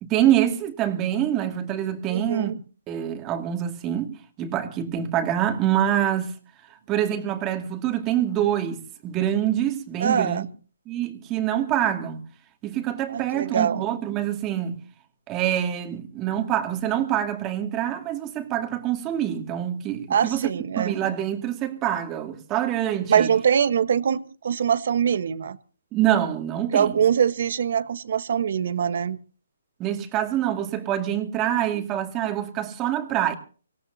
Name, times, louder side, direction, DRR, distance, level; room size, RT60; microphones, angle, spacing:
voice 1, 0.0-2.5 2.9-6.3 6.9-10.5 10.9-12.2 12.6-14.8 15.3-20.5 20.8-23.3 25.9-27.0 29.8-33.3, right 11 dB, 20° right, 2.4 m, -25 dB
voice 2, 2.1-2.6 10.0-10.4 13.1-13.8 20.1-21.0 23.1-25.6 26.7-29.2 31.7-31.8, right 8 dB, 55° right, 1.3 m, -23 dB
25.5 x 16.5 x 2.8 m
hypercardioid pair, 160°, 0 cm